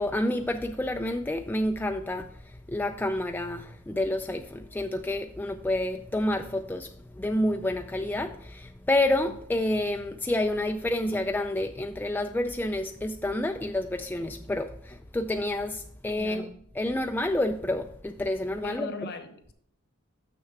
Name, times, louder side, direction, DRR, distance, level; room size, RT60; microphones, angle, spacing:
voice 1, 0.0-16.5 16.7-18.9, left 1 dB, 10° left, 0.3 m, -29 dB
voice 2, 16.2-16.6 18.6-19.5, left 1 dB, 50° left, 1.0 m, -39 dB
6.7 x 6.4 x 4.6 m
head